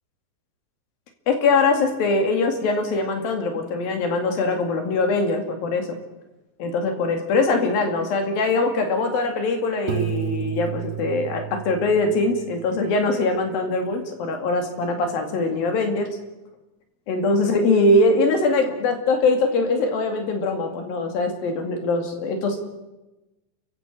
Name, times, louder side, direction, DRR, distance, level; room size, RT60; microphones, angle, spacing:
voice 1, 1.3-5.9 6.6-16.1 17.1-22.7, left 3 dB, 60° left, 5 dB, 3.9 m, -22 dB
Piano, 9.9-12.6, right 9 dB, 70° right, 3.3 m, -31 dB
29.0 x 16.0 x 6.5 m, 1.0 s
omnidirectional pair, 5.1 m